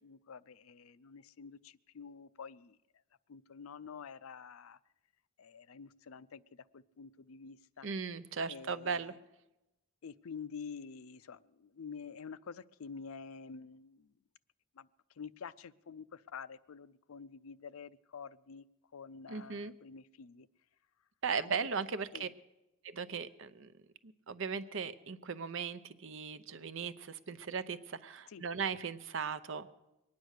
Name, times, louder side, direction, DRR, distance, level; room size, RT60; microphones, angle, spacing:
voice 1, 0.0-2.8 3.3-4.8 5.4-6.4 6.7-7.9 8.5-9.0 10.0-14.1 14.8-14.9 15.2-18.6 18.9-20.5 21.3-21.5 22.1-22.3 28.3-28.4, left 6 dB, 90° left, 16 dB, 0.5 m, -48 dB
voice 2, 7.8-9.2 19.3-19.7 21.2-22.3 22.8-23.7 24.0-29.9, right 5 dB, 65° right, 14 dB, 0.7 m, -38 dB
22.5 x 9.6 x 6.5 m, 0.97 s
head